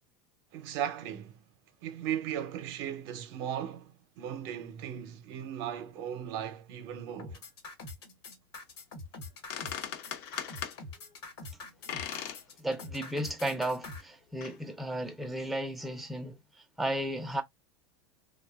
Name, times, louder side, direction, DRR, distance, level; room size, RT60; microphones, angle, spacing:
voice 1, 0.5-1.4 1.8-7.4, right 10 dB, 60° right, 0.6 m, -37 dB
sound 1, 7.2-14.0, left 2 dB, 85° left, 1.1 m, -44 dB
sound 2, 9.2-9.3 9.5-10.8 11.9-12.4 12.8-12.9 13.6-13.7 14.4-14.6, left 9 dB, 65° left, 0.6 m, -38 dB
voice 2, 12.6-16.4 16.8-17.4, right 1 dB, ahead, 0.4 m, -34 dB
2.5 x 2.2 x 2.3 m
supercardioid pair, 115°, 13 cm